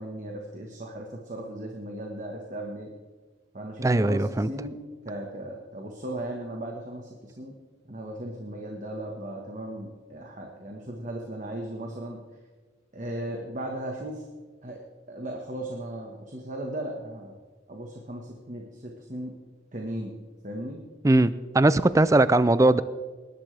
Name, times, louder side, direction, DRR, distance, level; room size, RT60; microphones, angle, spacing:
voice 1, 0.0-2.9 3.5-4.8 5.0-7.5 7.9-12.2 12.9-14.2 14.6-14.8 15.1-17.3 17.7-19.3 19.7-20.1 20.4-20.8, right 1 dB, 40° right, 1 dB, 1.4 m, -36 dB
voice 2, 3.8-4.5 21.0-22.8, right 2 dB, 15° right, 16 dB, 0.4 m, -20 dB
20.5 x 11.5 x 3.4 m, 1.4 s
head